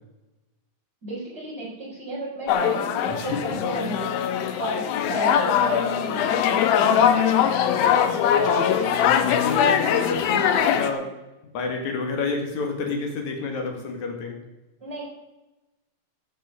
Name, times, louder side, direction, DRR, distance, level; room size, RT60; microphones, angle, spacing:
voice 1, 1.0-4.2 4.6-7.3 14.8-15.0, right 2 dB, 25° right, -7 dB, 4.9 m, -34 dB
sound 1, 2.5-10.9, left 8 dB, 75° left, 2.6 m, -21 dB
voice 2, 8.4-11.1 11.5-14.4, left 4 dB, 55° left, 2 dB, 3.1 m, -29 dB
17.0 x 6.2 x 6.8 m, 1.0 s
omnidirectional pair, 4.6 m